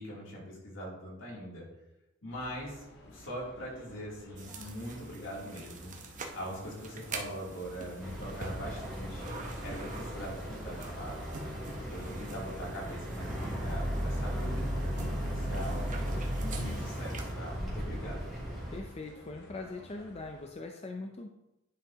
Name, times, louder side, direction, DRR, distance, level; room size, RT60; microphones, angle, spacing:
voice 1, 0.0-1.7 2.2-5.9 6.3-9.3 9.6-11.2 11.9-18.3, equal, 75° left, -5 dB, 2.9 m, -42 dB
sound 1, 2.3-20.5, equal, 55° left, 1.3 m, -52 dB
sound 2, 4.4-17.3, right 3 dB, 40° right, 0.9 m, -46 dB
Boat Water vehicle, 8.0-18.8, equal, ahead, 2.7 m, -36 dB
voice 2, 18.7-21.3, left 3 dB, 30° left, 3 dB, 0.5 m, -41 dB
10.0 x 5.7 x 2.9 m, 0.91 s
head